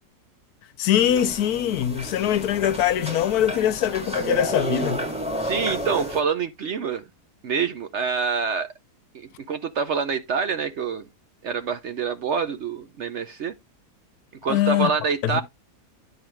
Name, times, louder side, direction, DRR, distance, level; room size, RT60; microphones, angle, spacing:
voice 1, 0.8-5.1 14.5-14.9 15.2-15.4, left 11 dB, 75° left, 1.1 m, -22 dB
sound 1, 0.9-6.2, right 1 dB, 5° right, 1.7 m, -31 dB
voice 2, 5.4-7.0 7.4-8.7 9.1-11.0 11.4-13.5 14.4-15.4, right 6 dB, 60° right, 0.8 m, -26 dB
10.5 x 4.7 x 3.1 m
omnidirectional pair, 1.7 m